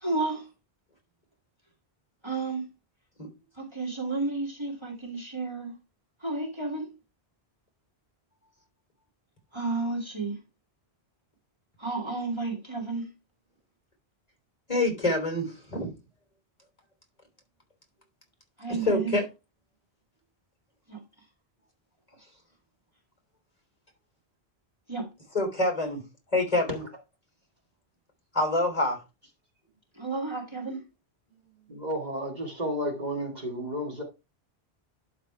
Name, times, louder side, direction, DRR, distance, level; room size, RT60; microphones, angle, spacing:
voice 1, 0.0-0.5 2.2-2.7 3.6-5.8 6.2-6.9 9.5-10.4 11.8-13.1 18.6-19.1 20.9-21.0 24.9-25.1 29.9-30.9, right 3 dB, 25° right, 2.4 m, -31 dB
voice 2, 14.7-15.9 18.8-19.2 25.3-26.0 26.3-26.8 28.3-29.0, left 2 dB, 35° left, 3.5 m, -26 dB
voice 3, 31.7-34.0, equal, 40° right, 2.4 m, -32 dB
11.5 x 4.1 x 4.6 m
omnidirectional pair, 1.1 m